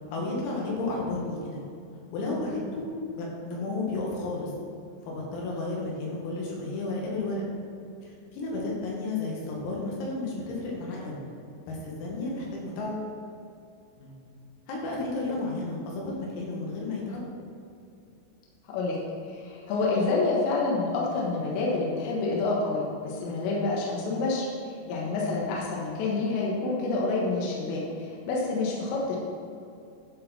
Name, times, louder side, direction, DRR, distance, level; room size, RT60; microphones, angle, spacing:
voice 1, 0.1-1.6 2.1-2.9 3.2-4.5 5.1-7.4 8.3-11.2 11.7-13.1 14.0-14.2 14.7-17.2 25.4-25.6, left 2 dB, 85° left, -3 dB, 4.6 m, -32 dB
voice 2, 19.3-24.5 24.9-27.8 28.3-29.2, left 3 dB, 70° left, -3 dB, 3.2 m, -28 dB
11.5 x 5.1 x 5.8 m, 2.5 s
omnidirectional pair, 5.9 m